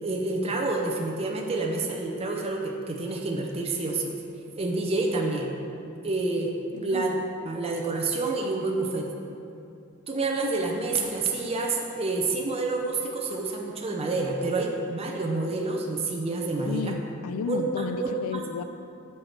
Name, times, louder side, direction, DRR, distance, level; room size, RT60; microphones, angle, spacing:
voice 1, 0.0-4.1 4.6-5.5 6.0-6.5 6.8-7.1 7.4-9.1 10.1-16.9 17.5-18.4, right 3 dB, 30° right, 1 dB, 0.6 m, -28 dB
voice 2, 6.7-7.1 16.6-18.6, left 5 dB, 75° left, 12 dB, 0.4 m, -33 dB
8.0 x 4.6 x 5.8 m, 2.7 s
head